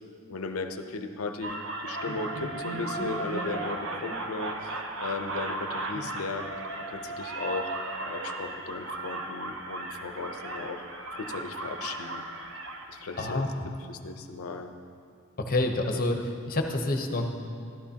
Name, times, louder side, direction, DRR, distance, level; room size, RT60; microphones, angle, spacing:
voice 1, 0.3-6.5 6.9-7.7 8.0-10.8 11.1-12.3 12.9-13.4 13.9-14.7, left 3 dB, 80° left, 7 dB, 0.6 m, -36 dB
sound 1, 1.4-13.4, right 2 dB, 65° right, 0.8 m, -36 dB
voice 2, 13.2-13.7 15.4-17.3, left 2 dB, 45° left, 4 dB, 0.8 m, -28 dB
12.0 x 12.0 x 2.8 m, 2.3 s
head